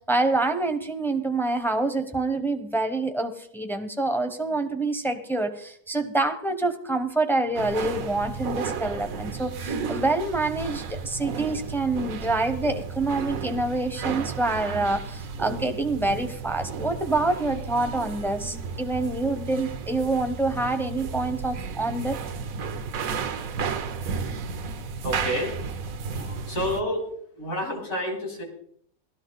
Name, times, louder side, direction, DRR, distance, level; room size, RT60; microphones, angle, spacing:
voice 1, 0.1-22.2, right 2 dB, ahead, 6 dB, 0.7 m, -26 dB
sound 1, 7.5-26.8, right 5 dB, 70° right, 1.3 m, -33 dB
voice 2, 25.0-25.5 26.2-28.4, equal, 80° left, 0 dB, 4.4 m, -29 dB
16.0 x 12.5 x 4.0 m, 0.65 s
omnidirectional pair, 1.6 m